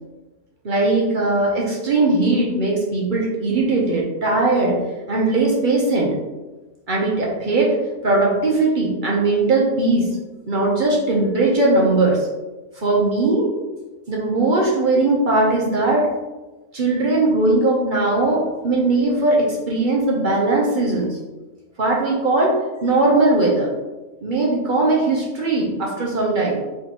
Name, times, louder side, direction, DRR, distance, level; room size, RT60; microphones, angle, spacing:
voice 1, 0.6-4.7 5.1-6.1 6.9-7.8 8.0-10.1 10.5-12.3 12.8-13.5 14.1-16.1 16.7-21.2 21.8-22.5 22.8-23.7 24.2-26.6, right 2 dB, 45° right, -3 dB, 0.8 m, -19 dB
4.5 x 3.5 x 2.9 m, 1.1 s
omnidirectional pair, 1.5 m